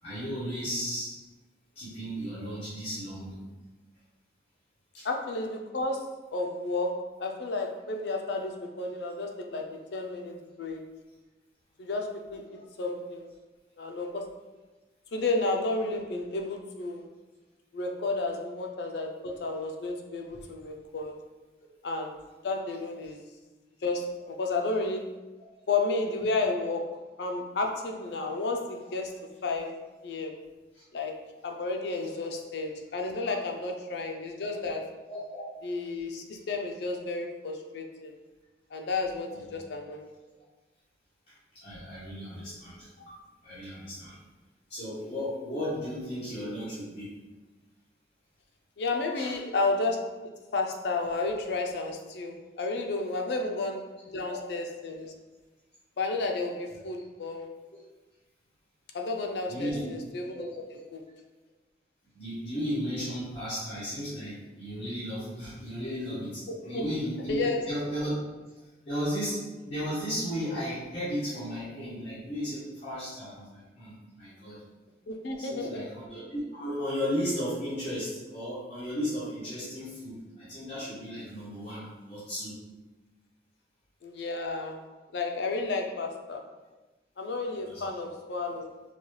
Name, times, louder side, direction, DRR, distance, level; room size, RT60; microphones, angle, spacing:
voice 1, 0.0-1.1 1.7-3.4 4.9-5.1 12.5-12.6 30.7-30.8 35.1-35.4 39.4-39.5 41.5-43.2 43.4-44.2 44.7-47.2 49.1-49.4 53.2-53.3 54.2-54.3 59.5-59.8 60.3-60.4 62.1-68.1 68.9-74.6 75.4-82.6 87.6-87.8, equal, 35° left, -13 dB, 1.0 m, -35 dB
voice 2, 5.0-10.8 11.8-13.3 13.8-14.4 15.1-17.0 17.7-21.1 21.8-22.2 22.4-23.2 23.8-25.1 25.7-29.7 30.0-30.4 30.9-34.9 35.6-38.1 38.7-40.1 48.8-50.0 50.5-55.1 56.0-57.5 58.9-60.6 60.9-61.0 66.5-66.9 67.3-67.6 75.1-75.9 84.0-84.8 85.1-86.4 87.2-88.7, left 3 dB, 65° left, 3 dB, 0.4 m, -32 dB
3.9 x 2.3 x 3.1 m, 1.2 s
head